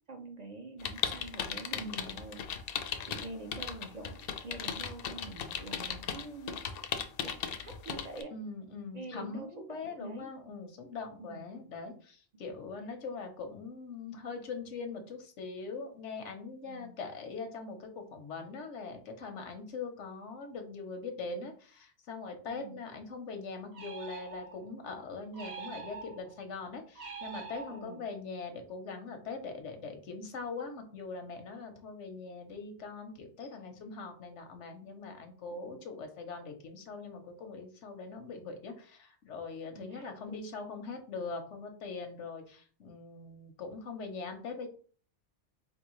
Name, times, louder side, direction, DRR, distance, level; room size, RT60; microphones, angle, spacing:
voice 1, 0.1-2.4 2.7-6.6 6.9-8.3 8.9-10.3 11.2-11.5 16.6-16.9 22.5-22.8 27.7-28.0 35.6-35.7 39.7-40.5, right 2 dB, 45° right, 3 dB, 0.7 m, -46 dB
sound 1, 0.8-8.2, left 7 dB, 65° left, 0.7 m, -37 dB
voice 2, 1.8-2.1 8.3-44.7, left 4 dB, 90° left, 6 dB, 1.1 m, -42 dB
sound 2, 23.7-24.8 25.3-26.4 27.0-28.1, right 5 dB, 65° right, 1.0 m, -45 dB
4.1 x 3.5 x 3.0 m, 0.42 s
omnidirectional pair, 1.2 m